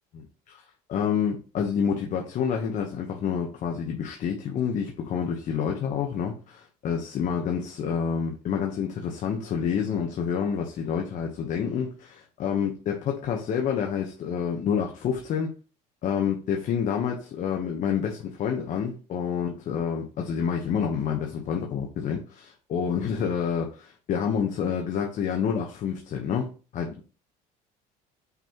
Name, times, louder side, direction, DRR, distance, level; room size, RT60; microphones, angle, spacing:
voice 1, 0.1-0.6 0.9-15.5 16.0-27.0, left 7 dB, 50° left, 1.0 m, -28 dB
5.9 x 5.4 x 2.9 m
cardioid pair, 125°, 17 cm